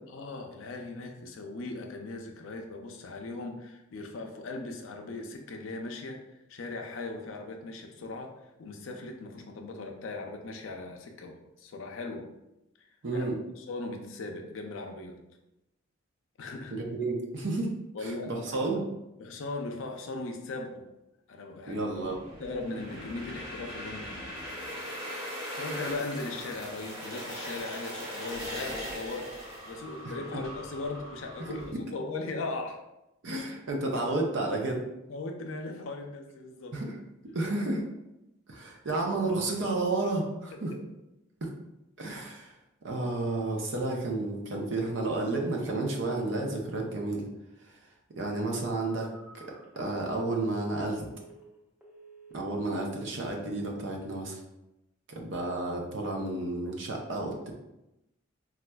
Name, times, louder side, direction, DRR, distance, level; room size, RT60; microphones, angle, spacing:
voice 1, 0.1-6.2 6.5-12.3 12.8-13.2 13.6-15.2 16.4-16.7 17.9-18.6 19.2-20.9 21.3-21.8 22.4-24.3 25.2-32.8 35.1-36.8 40.5-40.8, left 3 dB, 70° left, 3 dB, 0.5 m, -39 dB
voice 2, 13.0-13.4 16.7-17.7 18.0-18.9 21.7-22.2 33.2-34.8 36.7-36.9 37.3-37.8 38.5-40.7 41.4-41.5 42.0-42.5 42.8-47.3 48.2-49.1 49.3-49.4 49.8-51.1 52.3-54.4 55.2-57.5, right 2 dB, 65° right, 1 dB, 0.6 m, -31 dB
sound 1, 21.9-31.7, equal, 25° right, 1.0 m, -40 dB
Telephone, 48.5-51.6 51.8-52.5 52.8-53.1, right 3 dB, 5° right, 0.6 m, -53 dB
4.1 x 2.3 x 2.2 m, 0.92 s
head